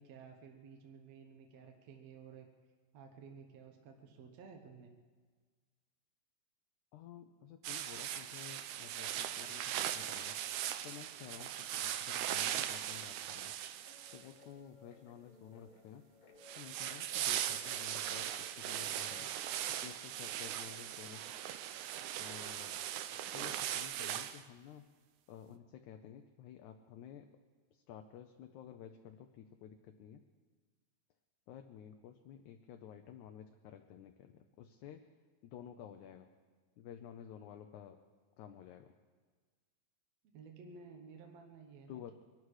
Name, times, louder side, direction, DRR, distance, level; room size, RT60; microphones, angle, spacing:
voice 1, 0.0-2.5 2.9-4.9 40.3-42.1, right 5 dB, 60° right, 2 dB, 1.9 m, -54 dB
voice 2, 6.9-10.4 10.8-13.6 14.1-16.0 16.6-19.3 19.7-21.2 22.2-22.8 23.3-24.9 25.3-27.3 27.7-30.2 31.5-35.0 35.4-36.3 36.8-38.0 38.4-38.9 41.9-42.1, left 9 dB, 75° left, 6 dB, 1.8 m, -52 dB
sound 1, 7.6-14.4 16.4-24.4, right 11 dB, 80° right, 1.8 m, -39 dB
Guitar, 13.9-19.3, left 3 dB, 55° left, 2.2 m, -62 dB
23.5 x 12.0 x 4.8 m, 1.5 s
omnidirectional pair, 4.0 m